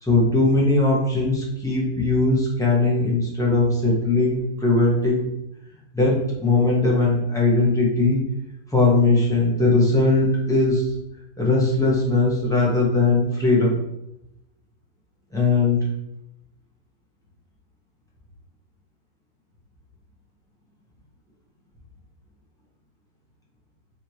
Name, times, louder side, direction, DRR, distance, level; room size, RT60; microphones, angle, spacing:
voice 1, 0.0-5.3 5.9-8.2 8.7-10.9 11.4-13.7 15.3-15.9, left 3 dB, 5° left, -5 dB, 0.4 m, -19 dB
4.2 x 3.0 x 2.8 m, 0.86 s
omnidirectional pair, 1.9 m